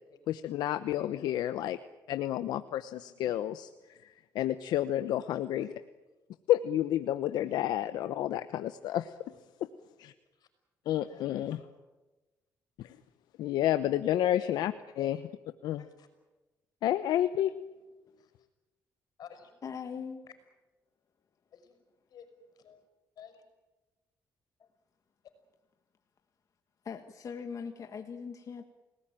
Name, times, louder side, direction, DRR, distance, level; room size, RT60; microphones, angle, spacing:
voice 1, 0.3-1.8 2.1-5.7 6.5-9.1 10.0-10.1 10.9-11.6 12.8-13.0 13.4-14.7 15.0-15.2 15.6-15.8 16.8-17.5, left 12 dB, 85° left, 11 dB, 0.9 m, -30 dB
voice 2, 0.9-1.2 4.9-5.8 7.3-7.4 9.3-9.4 10.3-10.5 11.1-11.7 14.4-15.3 15.8-16.1 18.2-18.3 19.2-19.5 20.2-20.3 21.5-21.8 22.1-22.8 23.2-23.4, left 7 dB, 70° left, 9 dB, 5.7 m, -52 dB
voice 3, 19.6-20.2 26.8-28.6, left 6 dB, 50° left, 6 dB, 1.7 m, -40 dB
30.0 x 19.0 x 9.1 m, 1.1 s
cardioid pair, 85°, 7 cm